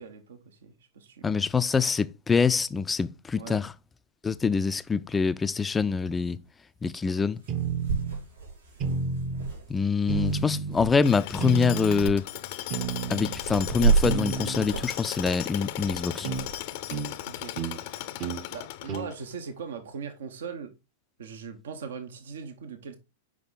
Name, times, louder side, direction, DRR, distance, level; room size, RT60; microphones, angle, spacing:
voice 1, 0.0-1.5 3.3-3.6 17.2-17.6 18.5-20.7 21.2-23.0, right 6 dB, 70° right, 1.0 m, -40 dB
voice 2, 1.2-3.7 4.2-6.4 6.8-7.4 9.7-12.2 13.1-16.3, left 5 dB, 15° left, 0.4 m, -25 dB
sound 1, 5.1-5.2 7.0-7.1 7.4-11.0 11.3-11.6 11.9-12.2 12.7-16.6, right 5 dB, 90° right, 3.7 m, -31 dB
sound 2, 7.5-8.2 8.8-9.5 10.1-10.8 11.4-12.1 12.7-13.4 14.0-14.7 16.2-16.5 16.9-17.1 17.6-17.8 18.2-18.4 18.9-19.1, right 6 dB, 40° right, 0.9 m, -31 dB
Tools, 11.0-19.3, left 14 dB, 55° left, 0.6 m, -37 dB
6.1 x 4.9 x 3.9 m
hypercardioid pair, 105°, 0 cm